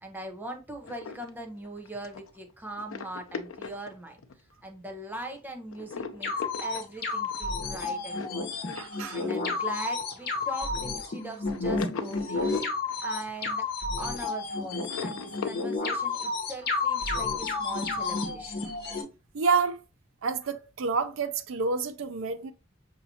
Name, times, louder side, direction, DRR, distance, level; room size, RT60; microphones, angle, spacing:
voice 1, 0.0-4.2 4.6-6.3 6.6-8.5 9.1-12.5 13.0-13.7 14.0-18.6, right 2 dB, 10° right, 0.7 m, -40 dB
sound 1, 0.8-4.6 5.1-5.4 5.7-14.4 14.7-15.8, left 5 dB, 85° left, 0.5 m, -40 dB
sound 2, 6.2-19.0, left 3 dB, 50° left, 1.0 m, -31 dB
voice 2, 8.8-9.3 19.3-19.8 20.2-22.5, right 4 dB, 75° right, 0.5 m, -28 dB
5.6 x 2.7 x 2.7 m
head